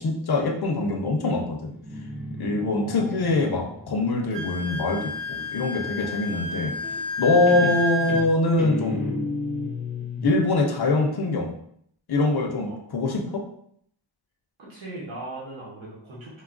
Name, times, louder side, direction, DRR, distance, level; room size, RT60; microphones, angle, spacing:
voice 1, 0.0-1.7 2.3-6.7 7.2-9.1 10.2-11.5 12.1-13.5, left 2 dB, 55° left, 3 dB, 0.6 m, -23 dB
Guitar, 1.7-5.3 6.8-7.2 7.5-10.4, left 2 dB, 5° right, 0.5 m, -33 dB
voice 2, 2.6-3.9 6.0-6.6 12.6-12.8 14.6-16.4, right 2 dB, 90° right, -5 dB, 1.0 m, -40 dB
Wind instrument woodwind instrument, 4.3-8.3, left 2 dB, 70° right, 0.5 m, -30 dB
3.3 x 2.3 x 2.4 m, 0.68 s
wide cardioid pair, 80°, 46 cm